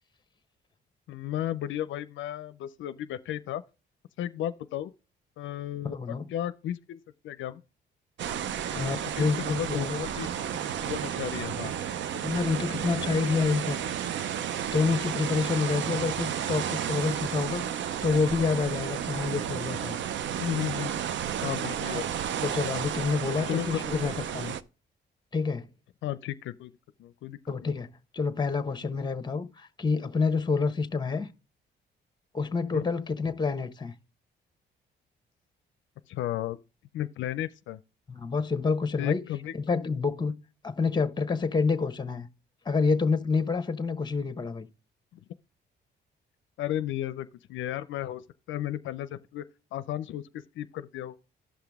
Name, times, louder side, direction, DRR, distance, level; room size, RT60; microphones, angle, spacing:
voice 1, 1.1-3.6 4.2-4.9 5.4-7.6 8.7-9.3 9.6-10.3 10.8-11.7 15.8-16.1 20.4-21.1 21.4-22.1 23.5-24.1 26.0-26.7 27.0-27.7 32.7-32.9 36.1-36.6 36.9-37.8 39.0-39.9 46.6-48.2 48.5-49.5 49.7-51.1, left 12 dB, 75° left, 0.5 m, -34 dB
voice 2, 5.8-6.3 8.8-10.0 12.1-13.8 14.7-20.0 22.4-24.5 25.3-25.7 27.5-27.9 28.1-31.3 32.3-33.9 38.1-39.2 39.6-40.3 40.6-42.3 42.6-44.7, left 4 dB, 20° left, 1.0 m, -28 dB
sound 1, 8.2-24.6, right 9 dB, 70° right, 0.6 m, -32 dB
11.5 x 5.8 x 3.5 m
cardioid pair, 90°, 20 cm